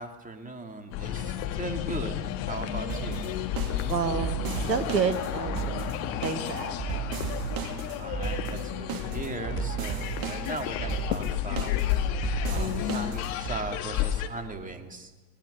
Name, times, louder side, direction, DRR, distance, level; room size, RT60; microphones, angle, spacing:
voice 1, 0.0-3.2 8.0-11.7 12.5-15.1, right 3 dB, 15° right, 6 dB, 2.8 m, -38 dB
sound 1, 0.9-14.3, left 11 dB, 55° left, 1.9 m, -32 dB
sound 2, 2.9-13.6, right 7 dB, 45° right, 2.6 m, -34 dB
voice 2, 3.9-4.4 4.7-5.9 6.2-7.0, right 6 dB, 80° right, 12 dB, 1.3 m, -29 dB
25.5 x 18.5 x 6.9 m, 1.2 s
figure-of-eight pair, 75°, 49 cm